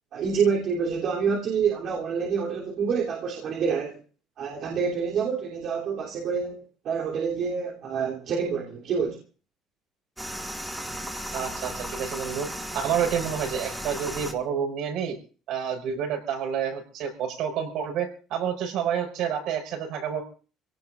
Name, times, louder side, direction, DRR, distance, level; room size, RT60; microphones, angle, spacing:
voice 1, 0.1-4.0 4.4-9.2, right 6 dB, 50° right, 3.2 m, -27 dB
sound 1, 10.2-14.3, equal, 5° right, 2.3 m, -35 dB
voice 2, 11.3-15.2 15.5-20.2, right 8 dB, 65° right, 5.7 m, -29 dB
27.5 x 17.5 x 2.6 m
cardioid pair, 150°, 0 cm